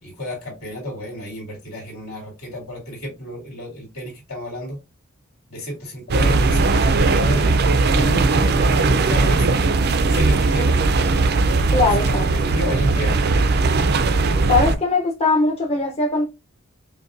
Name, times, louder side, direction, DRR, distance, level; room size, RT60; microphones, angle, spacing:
voice 1, 0.0-4.8 5.5-9.5 10.1-10.8 11.7-13.3, equal, 80° left, 2.2 m, -31 dB
sound 1, 6.1-14.7, right 3 dB, 50° right, 0.4 m, -18 dB
voice 2, 11.7-12.2 14.5-16.3, left 3 dB, 30° left, 0.7 m, -20 dB
5.1 x 2.2 x 2.5 m
head